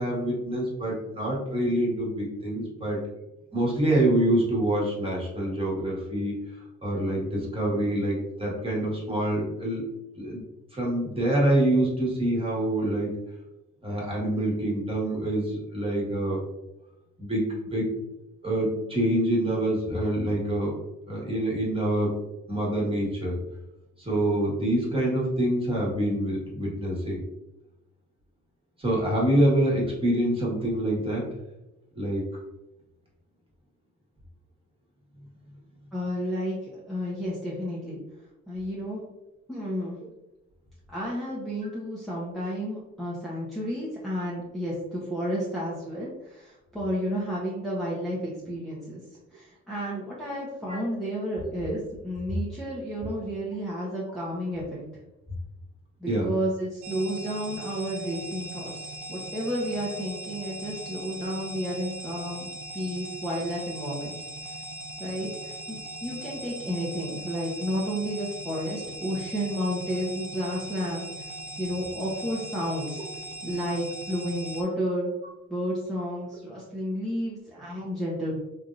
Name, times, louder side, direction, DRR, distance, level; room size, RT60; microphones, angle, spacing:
voice 1, 0.0-3.0 3.5-6.3 6.8-9.9 10.2-10.4 10.7-13.1 13.8-16.4 17.2-17.9 18.4-20.7 21.1-22.2 22.5-23.4 24.0-27.2 28.8-31.4 31.9-32.2 41.6-41.7 50.7-50.8 51.6-51.7 53.0-53.1 56.1-56.3, right 1 dB, 20° right, -4 dB, 1.4 m, -26 dB
voice 2, 35.9-38.0 38.5-39.0 39.5-40.0 40.9-49.0 49.3-54.8 56.0-64.1 65.0-73.0 73.4-75.1 75.5-78.4, equal, ahead, -8 dB, 0.8 m, -31 dB
sound 1, 56.8-74.6, right 1 dB, 80° right, 0.5 m, -39 dB
3.4 x 2.7 x 2.5 m, 0.94 s
cardioid pair, 90°, 30 cm